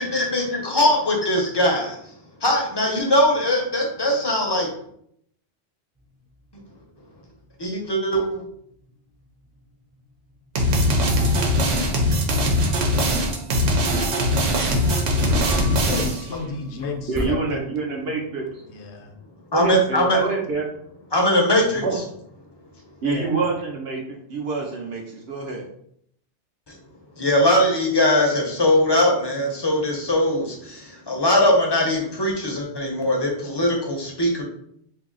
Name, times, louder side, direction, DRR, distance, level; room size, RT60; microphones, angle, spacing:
voice 1, 0.0-2.0 2.4-4.7 7.6-8.4 19.5-20.2 21.1-21.8 26.7-26.8 27.2-34.4, left 1 dB, 30° left, 0 dB, 0.5 m, -21 dB
sound 1, 6.0-17.3, equal, 20° right, 0.5 m, -36 dB
sound 2, 10.6-16.3, equal, 85° right, 1.1 m, -21 dB
voice 2, 14.1-15.4 15.6-17.7 18.6-19.1 19.7-19.8 21.5-21.9 23.0-23.5, left 4 dB, 70° left, 4 dB, 0.9 m, -34 dB
voice 3, 17.1-18.6 19.5-20.7 21.8-22.0 23.0-25.6, right 4 dB, 65° right, -1 dB, 0.8 m, -26 dB
2.7 x 2.7 x 3.8 m, 0.70 s
omnidirectional pair, 1.2 m